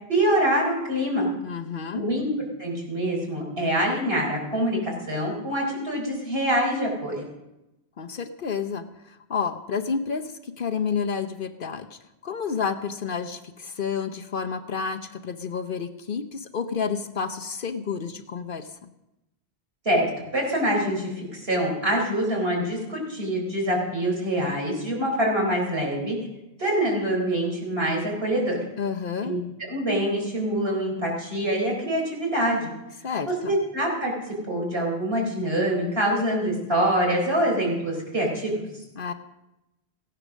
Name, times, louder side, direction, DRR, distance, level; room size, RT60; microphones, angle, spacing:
voice 1, 0.1-1.3 1.9-2.3 2.6-7.3 19.8-26.2 26.6-28.6 29.2-29.4 29.7-32.7 33.3-34.1 34.5-38.7, right 1 dB, 65° right, -1 dB, 4.6 m, -25 dB
voice 2, 1.4-2.1 8.0-18.7 28.8-29.4 33.0-33.5 39.0-39.1, left 6 dB, 55° left, 8 dB, 0.9 m, -30 dB
16.0 x 10.0 x 6.3 m, 0.93 s
omnidirectional pair, 1.1 m